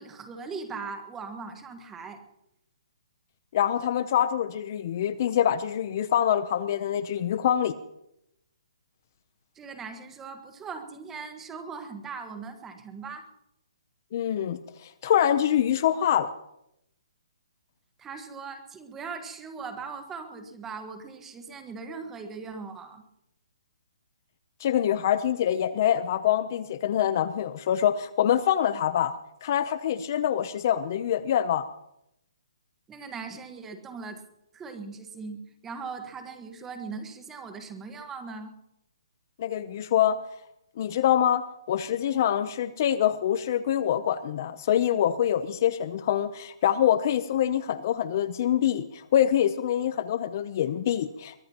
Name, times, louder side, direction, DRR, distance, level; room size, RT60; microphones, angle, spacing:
voice 1, 0.0-2.2 9.5-13.3 18.0-23.0 32.9-34.2 34.5-38.5, right 5 dB, 10° right, 6 dB, 1.4 m, -39 dB
voice 2, 3.5-7.8 14.1-16.3 24.6-31.7 39.4-40.2 40.8-51.4, left 10 dB, 35° left, 13 dB, 0.6 m, -25 dB
23.0 x 20.0 x 3.0 m, 0.82 s
hypercardioid pair, 165°, 3 cm